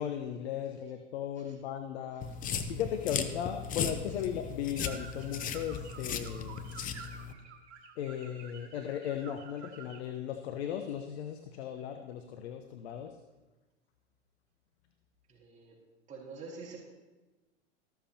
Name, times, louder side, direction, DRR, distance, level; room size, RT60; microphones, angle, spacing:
voice 1, 0.0-2.3 2.7-6.6 8.0-13.2, left 9 dB, 60° left, 6 dB, 1.0 m, -37 dB
sound 1, 2.2-7.3, left 6 dB, 20° left, 0.8 m, -37 dB
sound 2, 4.7-10.1, right 6 dB, 60° right, 1.7 m, -51 dB
voice 2, 15.3-15.8 16.1-16.8, right 4 dB, 20° right, -5 dB, 4.3 m, -47 dB
14.0 x 13.0 x 2.9 m, 1.1 s
hypercardioid pair, 110°, 36 cm